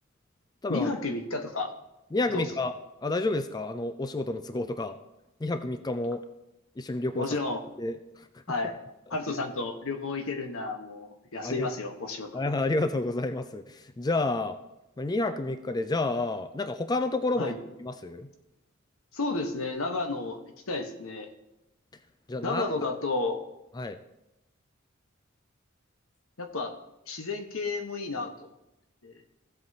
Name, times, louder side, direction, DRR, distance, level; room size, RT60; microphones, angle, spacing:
voice 1, 0.7-1.7 2.3-2.5 7.1-7.6 8.5-8.7 9.1-12.3 17.4-17.6 19.1-21.3 22.4-23.4 26.4-26.7 27.1-28.5 29.0-29.1, left 3 dB, 85° left, 5 dB, 1.2 m, -32 dB
voice 2, 2.1-2.7 3.0-5.0 5.4-6.2 6.8-7.3 7.8-8.0 8.3-8.4 11.4-11.7 12.3-14.6 15.0-17.5 17.8-18.3 22.3-22.7 23.8-24.0, left 2 dB, 20° left, 9 dB, 0.4 m, -29 dB
15.5 x 7.9 x 2.8 m, 0.93 s
head